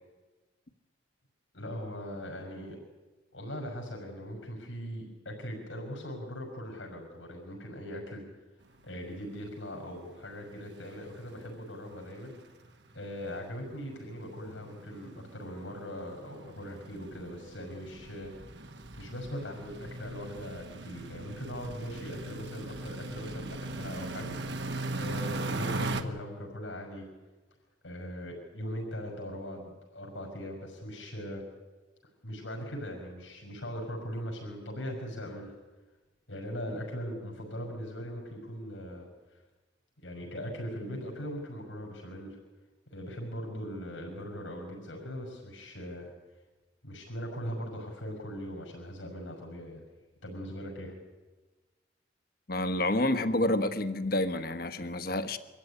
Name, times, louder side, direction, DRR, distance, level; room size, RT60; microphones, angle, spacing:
voice 1, 1.5-2.8 3.3-8.2 8.8-12.3 12.9-18.3 19.0-24.4 24.9-27.1 27.8-31.4 32.2-35.5 36.3-39.1 40.0-42.4 42.9-46.1 46.8-49.8 50.2-50.9, equal, 85° left, 5.9 m, -40 dB
sound 1, 8.9-9.0 9.3-9.5 9.8-9.9 10.2-26.0, right 2 dB, 65° right, 1.4 m, -40 dB
voice 2, 52.5-55.4, left 1 dB, 50° left, 1.2 m, -29 dB
24.5 x 15.0 x 9.9 m
head